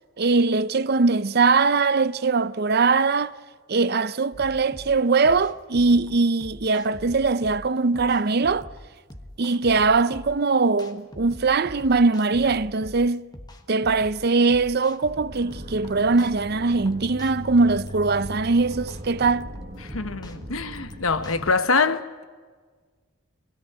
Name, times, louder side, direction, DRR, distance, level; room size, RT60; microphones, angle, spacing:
voice 1, 0.2-3.3 3.7-8.7 9.4-13.2 13.7-19.5, right 4 dB, 50° right, 0.6 m, -21 dB
sound 1, 4.3-21.5, left 1 dB, 20° left, 1.4 m, -44 dB
sound 2, 15.3-21.5, right 1 dB, 35° right, 1.7 m, -39 dB
voice 2, 19.8-22.2, left 4 dB, 75° left, 1.2 m, -24 dB
23.0 x 17.0 x 8.1 m
head